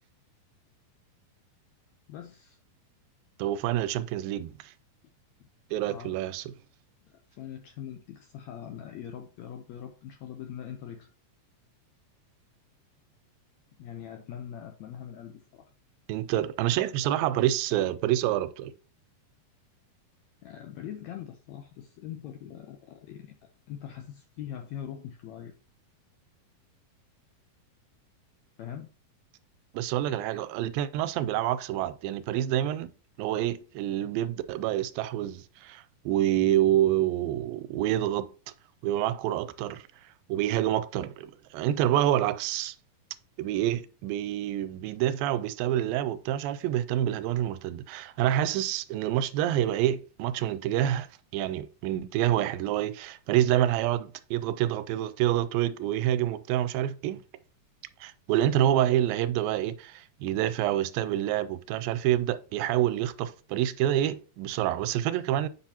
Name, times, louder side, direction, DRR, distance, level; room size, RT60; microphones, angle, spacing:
voice 1, 2.1-2.6 5.4-5.5 5.9-6.1 7.1-11.1 13.8-15.7 20.4-23.3 23.7-25.5 28.6-28.9 30.0-30.3, left 10 dB, 75° left, 1.6 m, -42 dB
voice 2, 3.4-4.7 5.7-6.5 16.1-18.7 29.7-32.9 33.2-38.3 38.8-39.8 40.3-42.8 43.4-51.1 51.3-57.2 58.0-65.5, right 12 dB, 90° right, 2.3 m, -27 dB
8.1 x 5.8 x 2.8 m
omnidirectional pair, 4.0 m